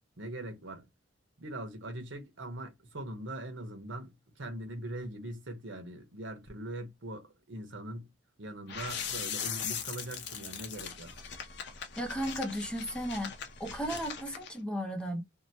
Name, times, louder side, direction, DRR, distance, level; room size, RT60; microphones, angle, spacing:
voice 1, 0.2-0.9 1.4-8.1 8.4-11.2, right 1 dB, 75° right, 0.9 m, -41 dB
sound 1, 8.7-14.5, left 7 dB, 60° left, 0.6 m, -40 dB
voice 2, 12.0-13.3 13.6-15.2, equal, 5° left, 0.5 m, -35 dB
2.8 x 2.1 x 2.7 m
head